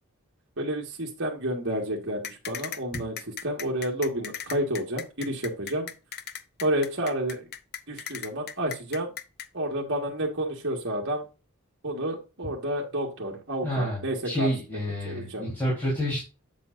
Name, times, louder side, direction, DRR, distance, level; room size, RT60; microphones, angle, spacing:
voice 1, 0.6-3.2 3.4-5.9 6.6-7.5 7.9-9.1 9.5-11.2 11.8-14.5 15.1-15.5, right 1 dB, 55° right, -2 dB, 1.8 m, -30 dB
sound 1, 2.2-9.5, left 8 dB, 50° left, 0.7 m, -37 dB
voice 2, 13.6-16.2, equal, 10° left, -6 dB, 3.8 m, -29 dB
7.7 x 7.4 x 2.6 m, 0.30 s
head